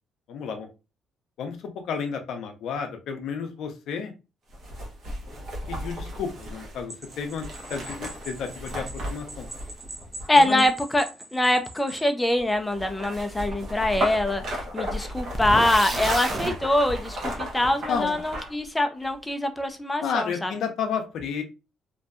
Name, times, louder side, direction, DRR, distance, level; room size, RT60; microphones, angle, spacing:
voice 1, 0.3-0.7 1.4-4.1 5.7-9.5 10.3-10.6 15.9-16.0 17.9-18.2 20.0-21.4, left 6 dB, 70° left, 0.5 m, -31 dB
sound 1, 4.5-10.7 12.3-18.7 19.0-19.1, equal, 60° right, 0.9 m, -35 dB
sound 2, 6.9-12.1, right 1 dB, 15° right, 1.0 m, -43 dB
voice 2, 10.3-11.1 11.3-20.5, left 1 dB, 15° left, 0.4 m, -24 dB
sound 3, 15.3-16.5, right 2 dB, 40° right, 0.6 m, -30 dB
2.6 x 2.2 x 2.4 m
supercardioid pair, 70°, 0 cm